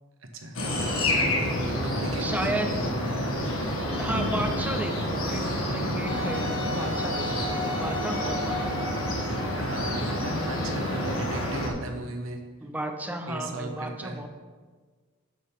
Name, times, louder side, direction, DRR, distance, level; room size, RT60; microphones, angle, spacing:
voice 1, 0.2-2.9 9.6-12.4 13.3-14.2, right 1 dB, 75° right, 4 dB, 1.3 m, -36 dB
sound 1, 0.5-11.7, left 1 dB, 80° left, 1.7 m, -28 dB
voice 2, 2.2-2.7 4.0-9.0 12.6-14.3, right 1 dB, 10° right, 5 dB, 0.7 m, -33 dB
Wind instrument woodwind instrument, 6.1-11.7, left 1 dB, 20° left, 2.4 m, -37 dB
11.5 x 7.6 x 3.6 m, 1.5 s
head